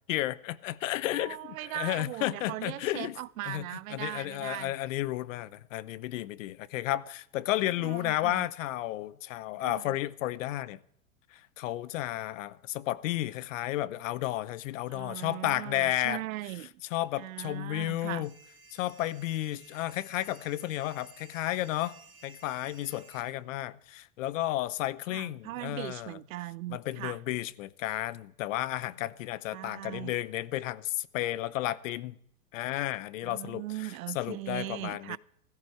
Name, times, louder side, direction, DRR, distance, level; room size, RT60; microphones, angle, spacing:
voice 1, 0.1-3.2 3.4-10.8 11.3-16.2 16.9-18.3 18.7-22.0 22.2-26.2 26.7-32.2 32.5-35.2, left 15 dB, 60° left, 0.8 m, -32 dB
voice 2, 1.1-4.7 7.8-8.5 9.6-10.0 14.9-16.7 17.2-18.3 25.1-27.2 29.5-30.2 33.2-35.2, right 18 dB, 70° right, 0.6 m, -39 dB
sound 1, 18.2-23.2, right 4 dB, 10° right, 2.2 m, -55 dB
15.5 x 14.0 x 4.6 m
hypercardioid pair, 135°, 43 cm